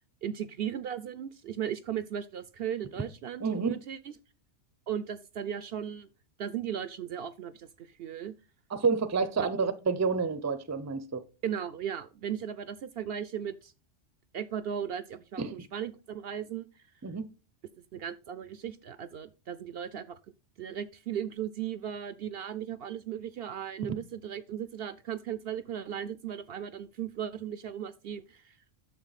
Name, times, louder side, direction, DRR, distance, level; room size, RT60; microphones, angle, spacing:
voice 1, 0.2-4.1 4.9-6.1 6.4-8.3 9.4-9.5 11.4-13.7 14.3-16.8 17.9-20.2 20.6-28.6, right 9 dB, 65° right, 0.7 m, -36 dB
voice 2, 8.7-11.2 15.4-15.6 17.0-17.3, right 5 dB, 20° right, 0.5 m, -29 dB
9.5 x 6.7 x 4.0 m
omnidirectional pair, 1.2 m